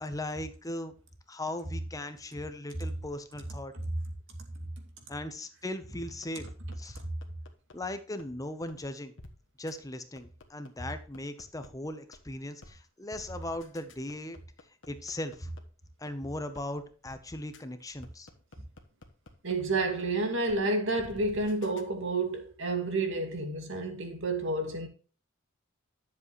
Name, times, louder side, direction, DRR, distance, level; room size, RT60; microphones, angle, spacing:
voice 1, 0.0-0.9 1.3-3.7 5.1-6.5 6.8-7.0 7.7-9.1 9.6-14.4 14.9-15.5 16.0-18.3, left 1 dB, 15° left, 0.9 m, -38 dB
sound 1, 6.2-7.8 8.2-8.3 8.7-8.8 9.2-9.3 9.7-9.8 10.2-11.7 12.1-12.2 12.6-12.7 13.1-15.6 16.1-16.2 16.6-16.7 17.0-17.2 17.5-17.6 18.0-19.6 20.0-20.1 20.5-20.6 21.0-21.8, left 2 dB, 60° left, 1.3 m, -51 dB
voice 2, 19.4-24.9, right 2 dB, 60° right, 2.3 m, -30 dB
11.0 x 7.5 x 3.1 m
head